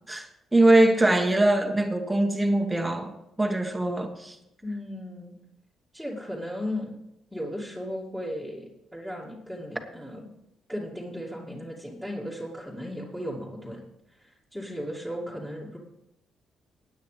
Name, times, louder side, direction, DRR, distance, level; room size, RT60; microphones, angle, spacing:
voice 1, 0.5-3.1 3.4-4.4, right 2 dB, 10° right, 4 dB, 1.6 m, -22 dB
voice 2, 4.6-5.4 5.9-6.9 7.3-10.2 10.7-13.8 14.2-15.8, equal, 5° left, -6 dB, 2.5 m, -36 dB
17.0 x 9.3 x 3.4 m, 0.85 s
cardioid pair, 90°, 0 cm